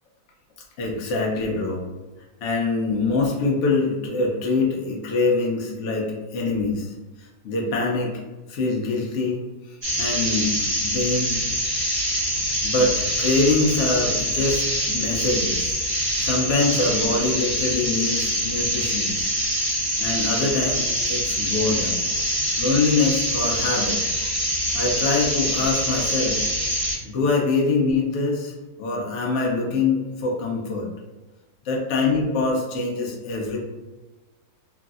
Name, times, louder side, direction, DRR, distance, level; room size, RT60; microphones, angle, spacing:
voice 1, 0.8-1.9 2.4-8.2 8.5-9.4 9.7-11.4 12.6-15.8 16.2-19.3 19.6-22.0 22.6-24.0 24.7-26.4 27.0-28.5 28.8-30.9 31.6-33.6, left 3 dB, 75° left, -2 dB, 0.6 m, -24 dB
sound 1, 9.8-27.0, equal, 30° right, 1.0 m, -25 dB
3.0 x 2.6 x 2.3 m, 1.1 s
omnidirectional pair, 1.9 m